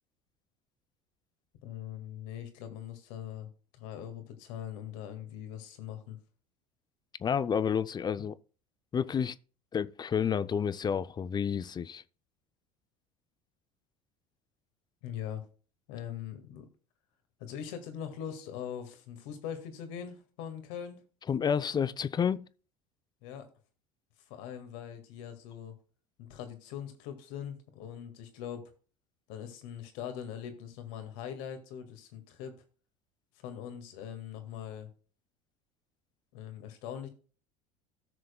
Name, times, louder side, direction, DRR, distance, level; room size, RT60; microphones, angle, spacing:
voice 1, 1.6-6.2 15.0-15.4 15.9-16.7 17.4-21.0 23.2-23.5 24.3-25.8 26.2-28.6 29.3-32.5 33.4-34.9 36.3-37.1, left 9 dB, 65° left, 1.8 m, -42 dB
voice 2, 7.2-8.3 8.9-9.4 9.7-12.0 21.3-22.5, left 7 dB, 25° left, 0.4 m, -30 dB
17.5 x 6.5 x 2.2 m
hypercardioid pair, 75°, 18 cm